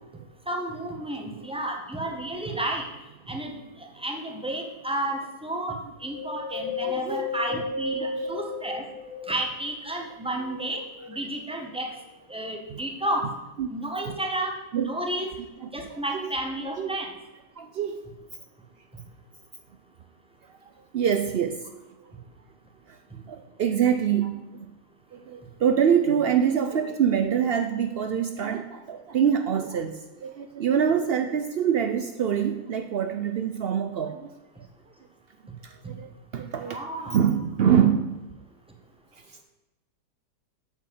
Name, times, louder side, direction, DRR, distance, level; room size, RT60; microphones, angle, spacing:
voice 1, 0.5-2.8 3.3-3.6 4.0-5.7 6.0-8.8 9.3-10.8 11.1-11.9 12.3-13.3 13.7-14.6 14.8-15.3 15.7-17.1 36.6-37.1, right 1 dB, 5° right, 2 dB, 1.3 m, -31 dB
Wind, 6.1-9.7 10.2-11.5 12.0-12.1, left 4 dB, 80° left, 1.8 m, -34 dB
voice 2, 6.8-7.3 7.5-7.6 8.0-8.4 12.7-12.8 13.6-13.7 14.7-14.9 15.8-16.3 16.8-17.0 17.6-18.0 20.6-21.6 22.9-23.0 23.3-24.5 25.1-34.3 35.6-36.8 37.1-38.2 39.3-39.4, right 8 dB, 80° right, 7 dB, 0.5 m, -25 dB
8.2 x 7.3 x 7.1 m, 1.0 s
omnidirectional pair, 1.8 m